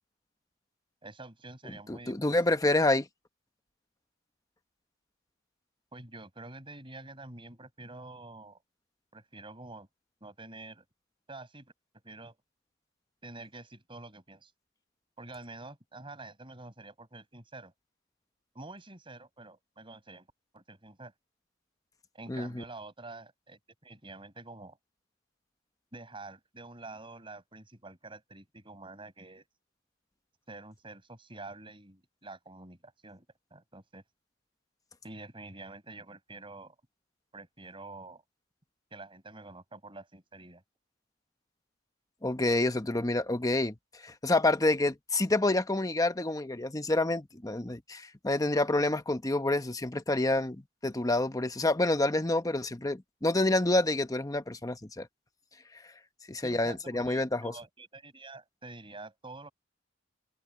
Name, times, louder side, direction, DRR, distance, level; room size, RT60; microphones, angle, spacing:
voice 1, 1.0-2.4 5.9-8.6 9.1-9.9 10.2-10.8 11.3-11.7 12.0-12.4 13.2-14.5 15.2-17.7 18.5-20.3 20.5-21.1 22.1-24.8 25.9-29.4 30.5-33.3 33.5-34.0 35.0-36.8 37.3-38.2 38.9-40.6 56.4-59.5, right 2 dB, 30° right, 7.4 m, -47 dB
voice 2, 1.9-3.1 22.3-22.6 42.2-43.7 44.0-55.1 56.3-57.5, left 2 dB, 20° left, 1.0 m, -28 dB
head